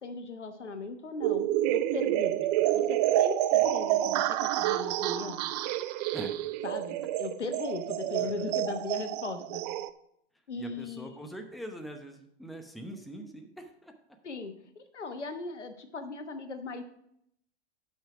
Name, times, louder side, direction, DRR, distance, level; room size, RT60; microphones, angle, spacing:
voice 1, 0.0-5.4 6.6-9.6 10.5-11.2 14.2-16.8, left 3 dB, 85° left, 8 dB, 1.1 m, -38 dB
sound 1, 1.2-9.9, right 13 dB, 40° right, 0.4 m, -28 dB
voice 2, 10.6-13.9, equal, ahead, 4 dB, 0.8 m, -43 dB
9.0 x 5.7 x 4.9 m, 0.74 s
hypercardioid pair, 105°, 34 cm